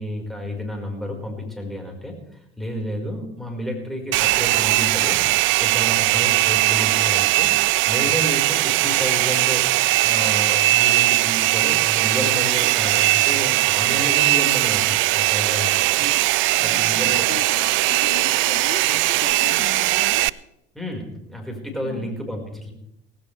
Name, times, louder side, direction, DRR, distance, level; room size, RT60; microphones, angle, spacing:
voice 1, 0.0-5.2 5.6-7.5 7.9-9.7 10.0-16.0 16.6-17.3 20.7-22.7, left 1 dB, ahead, 1 dB, 5.0 m, -31 dB
Domestic sounds home sounds, 4.1-20.3, right 19 dB, 40° right, 0.4 m, -19 dB
voice 2, 16.6-17.6 17.9-20.3 21.8-22.2, left 12 dB, 60° left, 11 dB, 1.1 m, -37 dB
18.0 x 16.0 x 3.4 m, 0.80 s
hypercardioid pair, 75°, 32 cm